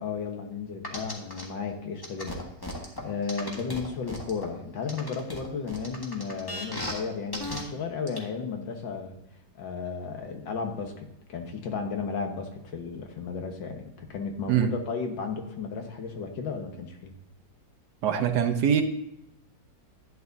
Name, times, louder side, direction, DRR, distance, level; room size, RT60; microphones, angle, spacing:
voice 1, 0.0-9.2 9.6-17.1, left 5 dB, 90° left, 4 dB, 2.0 m, -34 dB
sound 1, 0.8-1.4 2.0-4.5 4.9-7.0 7.3-7.6 8.1-8.2, left 1 dB, 15° left, 1.5 m, -35 dB
voice 2, 18.0-18.8, right 9 dB, 65° right, 7 dB, 1.4 m, -23 dB
12.0 x 9.3 x 2.7 m, 0.84 s
omnidirectional pair, 2.0 m